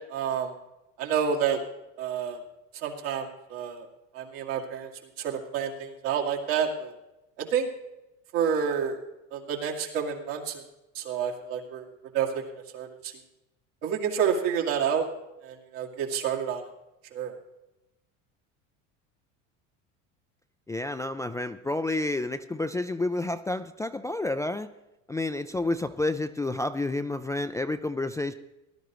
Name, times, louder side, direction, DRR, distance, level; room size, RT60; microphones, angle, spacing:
voice 1, 0.1-0.5 1.0-1.6 2.0-2.4 2.7-3.9 4.1-4.9 5.2-6.9 7.4-7.7 8.3-9.0 9.3-10.6 10.9-11.9 12.1-12.4 12.7-13.1 13.8-15.1 15.4-16.7 17.1-17.3, right 7 dB, 75° right, 0 dB, 2.4 m, -29 dB
voice 2, 20.7-24.7 25.1-28.3, left 2 dB, 10° left, 8 dB, 0.3 m, -30 dB
18.5 x 11.0 x 3.1 m, 0.97 s
supercardioid pair, 90°, 38 cm